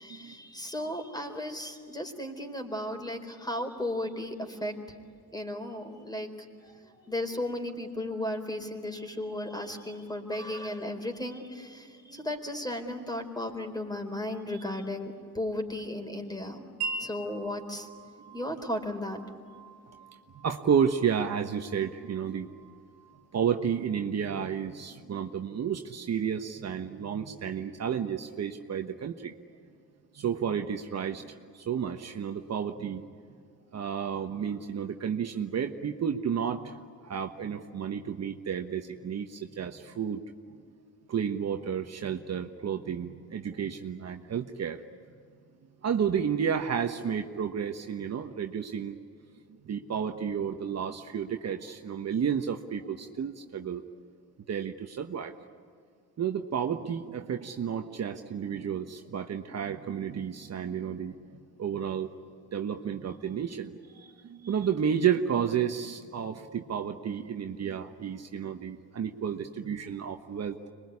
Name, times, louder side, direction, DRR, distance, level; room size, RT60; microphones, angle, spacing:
voice 1, 0.0-4.7 5.3-6.3 7.1-16.6 17.0-17.9 18.3-19.2, left 1 dB, 10° left, 5 dB, 4.3 m, -35 dB
Wind chime, 16.8-24.4, right 4 dB, 80° right, 2.2 m, -43 dB
voice 2, 20.3-22.5 23.3-29.4 30.1-33.0 33.7-36.8 37.0-40.2 41.1-44.8 45.8-49.0 49.6-53.8 54.5-55.3 56.2-61.2 61.6-62.1 62.5-70.6, right 7 dB, 45° right, 5 dB, 1.3 m, -31 dB
26.0 x 22.5 x 9.8 m, 2.2 s
supercardioid pair, 70°, 36 cm